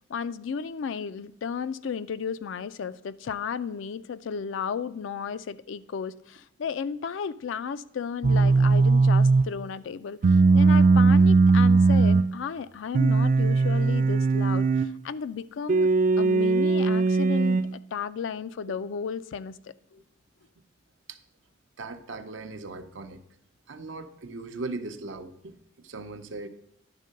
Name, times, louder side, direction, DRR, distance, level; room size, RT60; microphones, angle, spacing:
voice 1, 0.1-15.9 16.2-19.6 19.9-20.0, left 6 dB, 75° left, 0.4 m, -34 dB
sound 1, 8.2-9.5 10.2-12.3 12.9-14.9 15.7-17.7, right 4 dB, 40° right, 0.3 m, -19 dB
voice 2, 21.8-23.2 23.7-26.5, right 3 dB, 75° right, 0.6 m, -38 dB
10.5 x 3.7 x 6.4 m
head